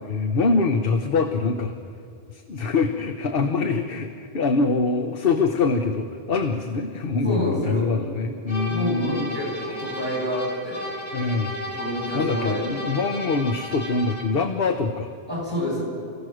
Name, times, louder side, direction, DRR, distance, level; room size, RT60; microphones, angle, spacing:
voice 1, 0.0-1.7 2.3-9.4 9.7-9.8 11.1-11.6 12.1-15.1, left 4 dB, 65° left, 5 dB, 1.2 m, -24 dB
voice 2, 7.2-7.9 8.7-10.9 11.7-13.0 15.3-15.8, left 1 dB, 50° left, -5 dB, 7.8 m, -28 dB
sound 1, 8.5-14.4, left 1 dB, 90° left, 2.8 m, -34 dB
28.5 x 15.5 x 6.3 m, 2.5 s
omnidirectional pair, 1.0 m